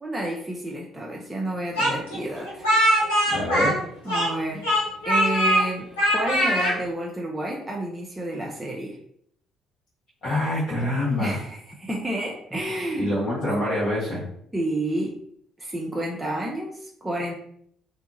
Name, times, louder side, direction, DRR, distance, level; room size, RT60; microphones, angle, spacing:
voice 1, 0.0-2.7 4.0-4.7 5.1-9.0 11.2-13.1 14.5-15.2 15.6-17.3, right 1 dB, 15° right, -2 dB, 0.5 m, -30 dB
Speech, 1.8-4.4 4.6-5.6 6.0-6.7, equal, 85° left, 1.0 m, -21 dB
voice 2, 3.3-3.8 10.2-11.4 13.0-14.3, left 1 dB, 55° left, -9 dB, 1.3 m, -25 dB
2.7 x 2.3 x 2.6 m, 0.67 s
hypercardioid pair, 50°, 0 cm